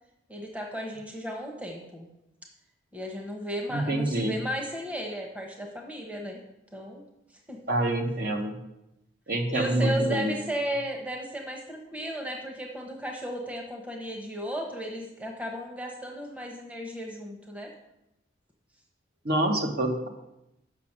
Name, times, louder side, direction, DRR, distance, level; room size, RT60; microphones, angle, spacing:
voice 1, 0.3-2.1 2.9-6.4 6.7-7.0 7.5-7.6 9.5-17.7, equal, 5° right, 1 dB, 0.9 m, -34 dB
voice 2, 3.7-4.3 7.7-8.6 9.3-10.3 19.2-20.1, right 1 dB, 55° right, 3 dB, 1.1 m, -26 dB
6.9 x 6.0 x 5.9 m, 0.88 s
head